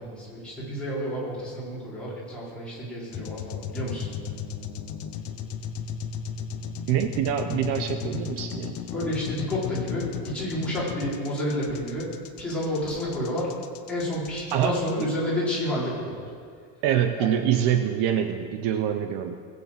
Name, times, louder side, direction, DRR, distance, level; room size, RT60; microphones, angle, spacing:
voice 1, 0.0-4.1 8.9-12.1 12.4-13.5 13.9-16.2 17.2-17.3, equal, ahead, -9 dB, 4.6 m, -30 dB
sound 1, 3.1-15.0, left 7 dB, 30° left, 0.6 m, -35 dB
voice 2, 6.9-8.8 14.5-15.1 16.8-19.4, right 9 dB, 60° right, 7 dB, 0.9 m, -25 dB
20.0 x 7.0 x 7.5 m, 2.2 s
cardioid pair, 175°, 48 cm